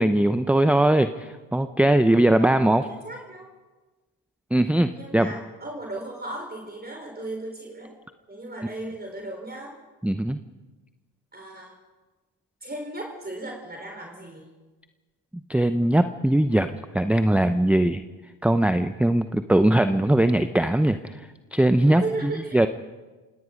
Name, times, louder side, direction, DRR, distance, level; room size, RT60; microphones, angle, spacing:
voice 1, 0.0-2.9 4.5-5.3 10.0-10.4 15.5-16.7 16.9-18.0 18.4-21.2 21.5-22.7, right 1 dB, 5° right, 10 dB, 0.7 m, -20 dB
voice 2, 2.4-3.5 4.9-7.9 8.3-9.7 11.3-11.8 12.6-14.5 21.8-22.7, right 2 dB, 20° right, 1 dB, 4.4 m, -36 dB
27.5 x 18.0 x 5.3 m, 1.3 s
hypercardioid pair, 65°, 48 cm